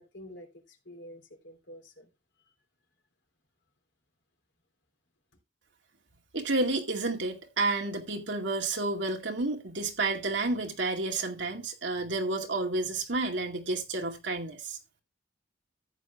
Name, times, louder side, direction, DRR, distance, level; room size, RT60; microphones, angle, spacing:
voice 1, 0.0-2.1, equal, 65° left, 3.3 m, -48 dB
voice 2, 6.3-14.8, right 2 dB, 70° right, 2.2 m, -30 dB
14.5 x 9.6 x 2.3 m
head